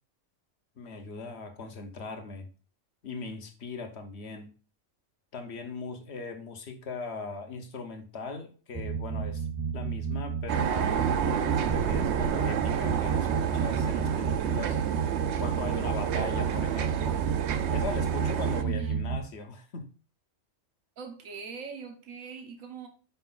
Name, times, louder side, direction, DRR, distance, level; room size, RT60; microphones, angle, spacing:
voice 1, 0.8-2.5 3.0-4.5 5.3-9.5 9.7-14.8 15.4-17.2 17.7-19.9, left 4 dB, 60° left, 1.2 m, -39 dB
sound 1, 8.7-19.2, right 6 dB, 25° right, 0.5 m, -31 dB
sound 2, 10.5-18.6, right 9 dB, 65° right, 0.8 m, -30 dB
voice 2, 18.4-19.1 21.0-22.9, right 6 dB, 85° right, 1.4 m, -41 dB
5.6 x 4.7 x 3.9 m
omnidirectional pair, 1.3 m